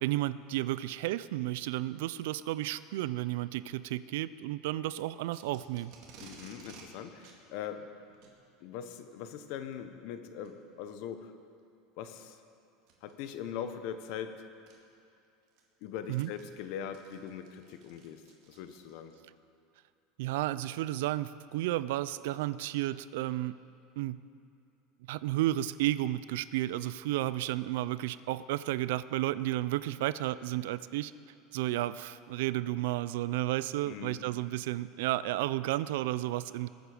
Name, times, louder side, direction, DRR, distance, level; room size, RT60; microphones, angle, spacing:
voice 1, 0.0-5.9 16.1-16.3 20.2-23.6 24.0-24.2 25.1-31.1 31.5-36.7, right 15 dB, 75° right, 16 dB, 0.4 m, -32 dB
Packing tape duct tape, 5.3-6.9 7.2-7.4 8.1-8.4 9.5-9.7 10.4-10.5 11.2-11.3 12.8-13.1 14.2-14.3 14.7-14.8 15.2-19.2, right 5 dB, 55° right, 2.2 m, -55 dB
voice 2, 6.2-7.9 8.6-11.3 12.0-12.4 13.0-14.4 15.8-19.1 33.9-34.2, left 8 dB, 60° left, 9 dB, 1.0 m, -41 dB
20.5 x 7.9 x 5.0 m, 2.7 s
supercardioid pair, 155°, 0 cm